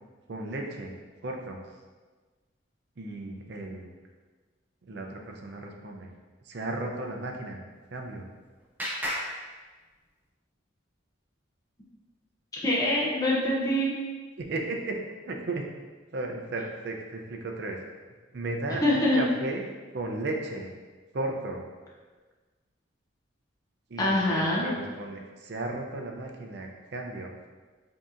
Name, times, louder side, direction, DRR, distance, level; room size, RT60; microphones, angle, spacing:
voice 1, 0.3-0.9 1.2-1.6 3.0-3.9 4.8-6.1 6.5-7.6 7.9-8.2 14.4-15.0 15.3-15.6 16.1-17.8 18.3-19.6 19.9-20.7 21.1-21.6 23.9-27.3, right 2 dB, 55° right, 2 dB, 0.5 m, -35 dB
Clapping, 7.7-10.3, equal, 10° right, 0.9 m, -38 dB
voice 2, 12.6-13.9 18.8-19.3 24.0-24.7, left 1 dB, 20° left, -5 dB, 0.6 m, -24 dB
5.2 x 2.8 x 2.4 m, 1.4 s
head